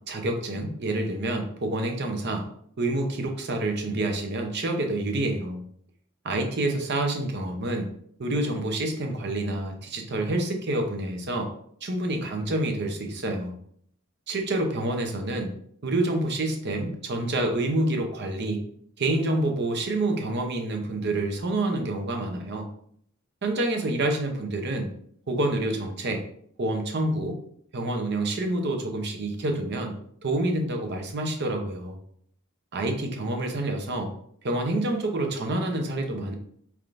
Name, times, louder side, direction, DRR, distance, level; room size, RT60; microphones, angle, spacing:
voice 1, 0.1-2.5 2.8-5.6 6.2-7.9 8.2-11.5 11.8-13.5 14.3-15.5 15.8-18.6 19.0-22.7 23.4-24.9 25.3-26.2 26.6-27.4 27.7-30.0 30.2-32.0 32.7-34.1 34.4-36.3, right 2 dB, 55° right, 4 dB, 0.7 m, -27 dB
4.5 x 3.5 x 2.6 m, 0.65 s
head